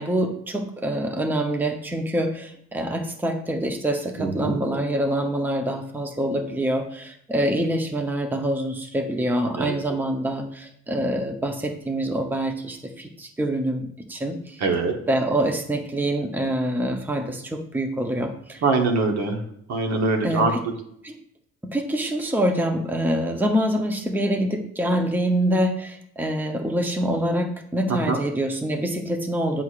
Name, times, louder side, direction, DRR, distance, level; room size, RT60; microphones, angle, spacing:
voice 1, 0.0-14.6 15.1-18.6 20.2-20.6 21.0-21.1 21.6-29.6, right 1 dB, 5° right, 5 dB, 0.7 m, -25 dB
voice 2, 4.2-4.6 9.6-9.8 14.6-15.0 18.6-19.4 19.7-20.7 27.9-28.2, right 3 dB, 60° right, 3 dB, 1.1 m, -23 dB
8.0 x 5.8 x 2.5 m, 0.72 s
cardioid pair, 90°, 30 cm